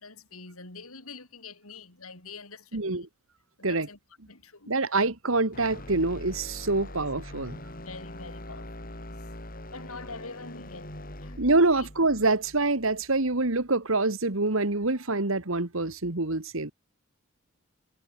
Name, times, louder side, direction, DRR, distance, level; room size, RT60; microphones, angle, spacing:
voice 1, 0.0-3.1 3.6-4.0 4.3-4.7 6.7-7.0 7.8-9.2 9.7-11.4 11.7-11.9, left 4 dB, 90° left, 6.1 m, -45 dB
voice 2, 2.7-3.1 3.6-3.9 4.7-7.6 11.4-16.7, right 3 dB, 75° right, 2.0 m, -26 dB
sound 1, 5.5-13.7, left 1 dB, 40° left, 7.2 m, -43 dB
head